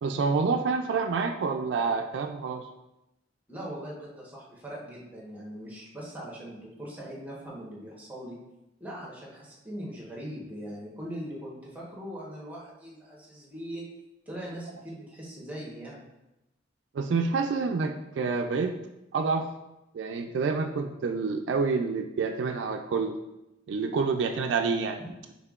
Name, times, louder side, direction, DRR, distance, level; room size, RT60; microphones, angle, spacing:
voice 1, 0.0-2.7 16.9-18.7 19.1-19.5 19.9-23.2 23.7-25.0, right 4 dB, 70° right, 4 dB, 0.3 m, -28 dB
voice 2, 3.5-8.4 8.8-13.9 14.3-16.0 25.0-25.1, equal, 10° right, -4 dB, 1.0 m, -40 dB
5.6 x 3.5 x 2.4 m, 0.93 s
head